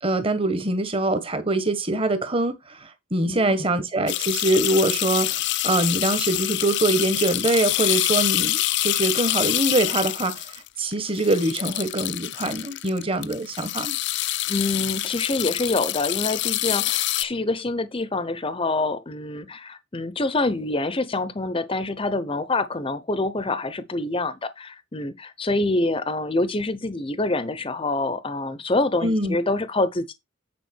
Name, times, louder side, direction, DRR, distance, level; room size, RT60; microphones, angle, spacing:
voice 1, 0.0-14.0 29.0-29.4, right 2 dB, 25° right, 1.4 m, -24 dB
voice 2, 3.3-3.6 14.5-30.1, left 2 dB, 25° left, 0.7 m, -26 dB
sound 1, 4.1-17.2, left 15 dB, 55° left, 0.5 m, -26 dB
9.3 x 5.0 x 4.5 m
head